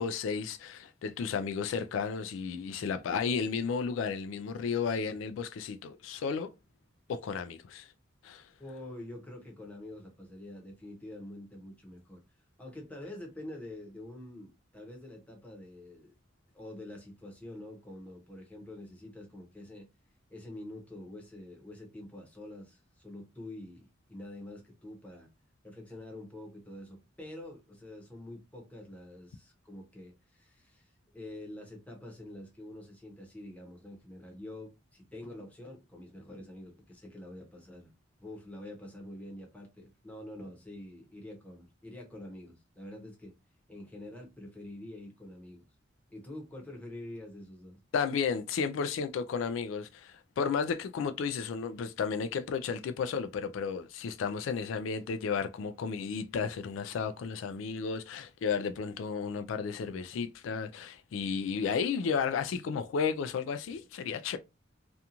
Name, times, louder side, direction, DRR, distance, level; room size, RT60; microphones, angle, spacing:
voice 1, 0.0-6.5 7.1-7.9 8.2-8.4 47.9-64.4, left 6 dB, 80° left, 0.3 m, -33 dB
voice 2, 8.6-12.2 12.6-16.1 16.5-19.9 20.3-25.3 25.6-37.9 38.2-43.3 43.7-45.7 46.1-47.8, left 1 dB, 10° left, 0.8 m, -46 dB
2.5 x 2.3 x 2.8 m
head